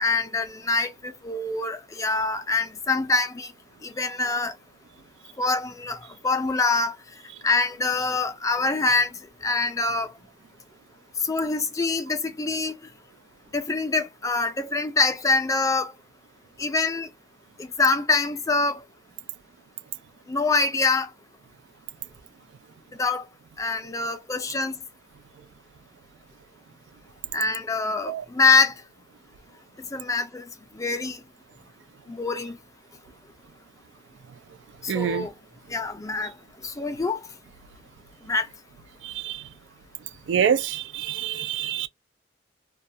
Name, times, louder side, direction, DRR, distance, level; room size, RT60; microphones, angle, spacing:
voice 1, 0.0-3.5 3.8-4.5 5.4-7.0 7.4-9.1 9.4-10.1 11.2-12.8 13.5-15.9 16.6-17.1 17.6-18.8 20.3-21.1 23.0-23.3 23.6-24.8 27.3-28.7 29.9-30.4 30.7-31.2 32.1-32.6 34.8-35.3 35.7-36.4 36.6-37.3 38.2-38.5, left 3 dB, 20° left, 0.4 m, -25 dB
voice 2, 34.9-35.3 39.0-39.4 40.3-41.9, right 8 dB, 75° right, 0.3 m, -26 dB
2.2 x 2.2 x 2.6 m
head